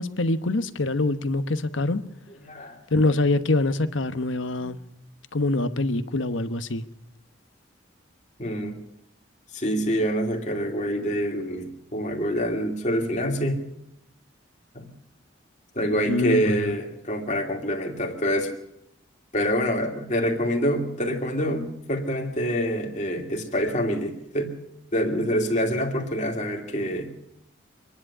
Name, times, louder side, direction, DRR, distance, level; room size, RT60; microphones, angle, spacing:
voice 1, 0.0-2.0 2.9-4.8 5.3-6.8 16.1-16.7, left 2 dB, 80° left, 1.1 m, -24 dB
voice 2, 2.3-2.8 8.4-8.8 9.5-13.6 14.7-14.9 15.7-18.5 19.3-24.5 24.9-27.1, equal, 35° left, 2.6 m, -26 dB
25.5 x 10.5 x 9.9 m
head